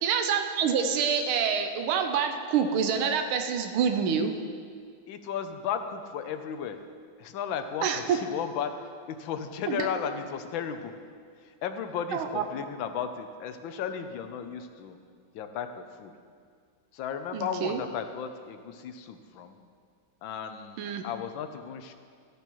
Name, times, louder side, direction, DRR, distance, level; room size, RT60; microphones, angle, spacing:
voice 1, 0.0-4.3 7.8-8.2 9.7-9.9 12.1-12.4 17.3-17.8 20.8-21.0, right 7 dB, 90° right, 6 dB, 1.5 m, -27 dB
voice 2, 5.1-6.8 7.2-8.7 9.1-11.0 11.4-15.0 15.3-16.1 16.9-19.6 20.2-21.9, left 7 dB, 75° left, 8 dB, 1.4 m, -35 dB
13.0 x 10.0 x 3.0 m, 2.1 s
omnidirectional pair, 2.2 m